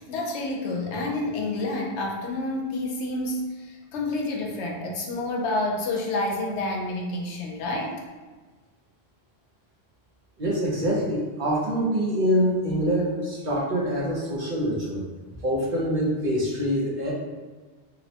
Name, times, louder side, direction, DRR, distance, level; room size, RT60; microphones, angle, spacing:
voice 1, 0.0-8.0, left 2 dB, 85° left, 1 dB, 0.9 m, -29 dB
voice 2, 10.4-15.1 15.4-17.1, equal, 55° right, -5 dB, 0.7 m, -25 dB
2.8 x 2.1 x 2.7 m, 1.3 s
omnidirectional pair, 1.1 m